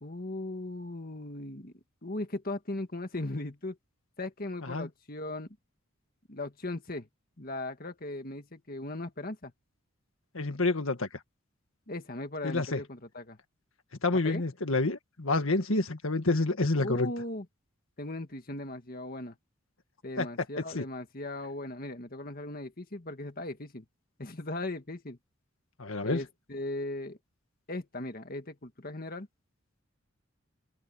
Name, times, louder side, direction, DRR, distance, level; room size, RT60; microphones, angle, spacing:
voice 1, 0.0-1.7 2.0-3.8 4.2-5.5 6.3-7.1 7.4-9.5 11.9-13.4 14.2-14.4 16.8-17.5 18.0-19.4 20.0-23.8 24.2-25.2 26.0-27.2 27.7-29.3, left 2 dB, 45° left, 1.8 m, -38 dB
voice 2, 10.3-11.1 12.4-12.8 14.0-17.1 20.2-20.3 20.7-20.8 25.8-26.2, left 2 dB, 75° left, 1.8 m, -28 dB
open air
head